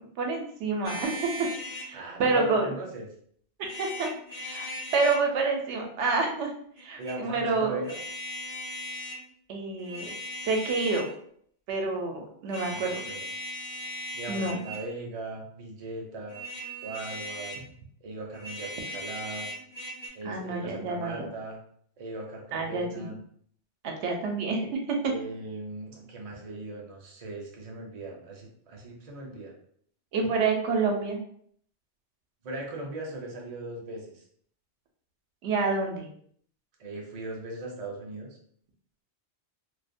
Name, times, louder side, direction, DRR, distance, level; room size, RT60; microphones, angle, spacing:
voice 1, 0.2-2.7 3.8-4.7 4.9-7.8 9.5-10.1 10.4-11.1 11.7-13.0 14.3-14.6 20.2-21.3 22.5-23.1 23.8-25.0 30.1-31.2 35.4-36.1, right 3 dB, 90° right, 1 dB, 0.9 m, -28 dB
sound 1, 0.8-1.9 3.6-5.2 6.8-7.2 7.8-9.2 9.8-11.2 12.5-14.9 16.3-17.7 18.3-20.1, equal, 55° left, 0.7 m, -38 dB
voice 2, 1.9-3.1 7.0-8.0 12.6-13.3 14.1-16.4 16.8-17.6 18.0-19.5 20.1-21.6 22.0-23.2 25.1-29.5 32.4-34.2 36.8-38.4, right 2 dB, 45° right, -1 dB, 0.5 m, -39 dB
2.4 x 2.1 x 2.5 m, 0.63 s
omnidirectional pair, 1.2 m